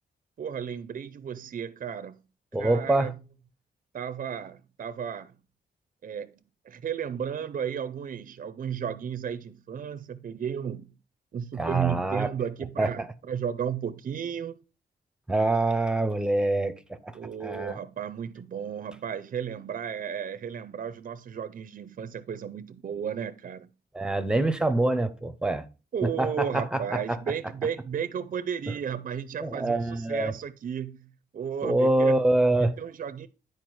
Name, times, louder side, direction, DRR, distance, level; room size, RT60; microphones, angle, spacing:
voice 1, 0.4-2.1 2.6-3.2 3.9-5.3 6.0-6.3 6.7-10.9 11.3-14.6 17.1-23.7 25.9-32.1 32.8-33.3, right 8 dB, 45° right, 0.5 m, -33 dB
voice 2, 2.5-3.1 11.6-12.3 12.8-13.1 15.3-17.8 23.9-25.7 26.0-27.2 28.7-28.8 29.4-30.3 31.6-32.8, right 2 dB, 5° right, 0.6 m, -25 dB
9.4 x 4.6 x 4.6 m
wide cardioid pair, 155°, 19 cm